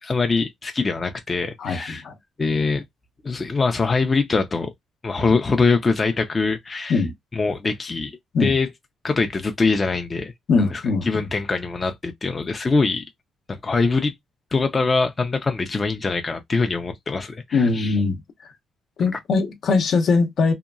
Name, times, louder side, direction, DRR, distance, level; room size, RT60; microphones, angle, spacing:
voice 1, 0.0-2.0 2.4-2.8 3.2-4.7 5.0-7.0 7.3-8.7 9.0-10.3 10.7-13.0 13.5-14.1 14.5-18.0, left 4 dB, 30° left, 0.5 m, -23 dB
voice 2, 1.6-2.1 6.9-7.1 8.3-8.5 10.5-11.3 17.5-18.2 19.0-20.5, left 4 dB, 65° left, 0.7 m, -21 dB
2.8 x 2.2 x 2.4 m
cardioid pair, 90°, 0 cm